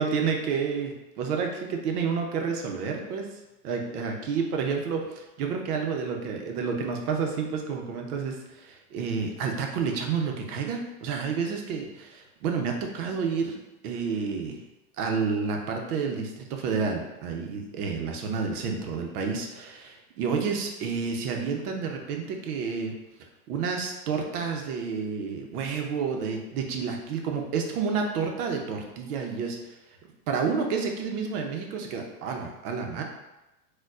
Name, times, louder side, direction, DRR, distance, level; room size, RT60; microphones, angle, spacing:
voice 1, 0.0-3.3 3.6-13.6 13.8-14.6 15.0-22.9 23.5-29.6 30.3-33.0, right 5 dB, 80° right, 2 dB, 0.8 m, -30 dB
4.2 x 2.3 x 2.4 m, 0.99 s
supercardioid pair, 140°, 45 cm